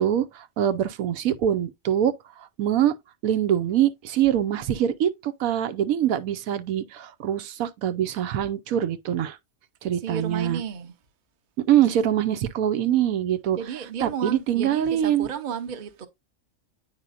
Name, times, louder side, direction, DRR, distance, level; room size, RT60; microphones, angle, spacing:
voice 1, 0.0-2.1 2.6-2.9 3.2-9.4 9.8-10.6 11.7-13.6 14.0-15.3, right 10 dB, 90° right, 1.1 m, -24 dB
voice 2, 9.9-10.9 13.5-16.1, right 7 dB, 40° right, 0.8 m, -33 dB
8.9 x 4.9 x 2.5 m
omnidirectional pair, 1.5 m